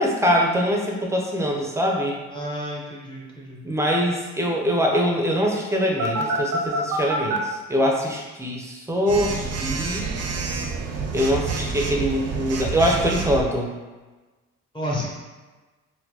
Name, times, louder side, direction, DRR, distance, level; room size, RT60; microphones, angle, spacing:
voice 1, 0.0-2.2 3.6-10.1 11.1-13.7, equal, 10° right, -1 dB, 0.6 m, -23 dB
voice 2, 2.3-3.6 14.7-15.1, equal, 15° left, -4 dB, 0.9 m, -31 dB
Telephone, 6.0-7.4 9.1-13.4, right 4 dB, 55° right, 0.5 m, -27 dB
4.2 x 2.2 x 2.8 m, 1.2 s
cardioid pair, 90°, 30 cm